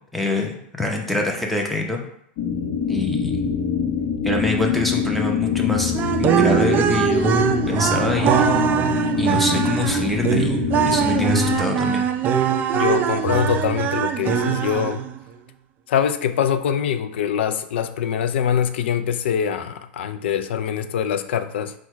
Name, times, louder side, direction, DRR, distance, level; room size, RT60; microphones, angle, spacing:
voice 1, 0.1-2.0 2.9-3.4 4.2-5.9 6.2-8.5 9.2-12.1, left 2 dB, ahead, 0.7 m, -25 dB
sound 1, 2.4-11.6, left 6 dB, 60° left, 0.8 m, -24 dB
sound 2, 5.9-15.2, right 8 dB, 30° right, 0.4 m, -21 dB
voice 2, 12.7-15.0 15.9-21.7, left 8 dB, 80° left, 0.4 m, -23 dB
4.4 x 2.3 x 4.5 m
supercardioid pair, 125°, 6 cm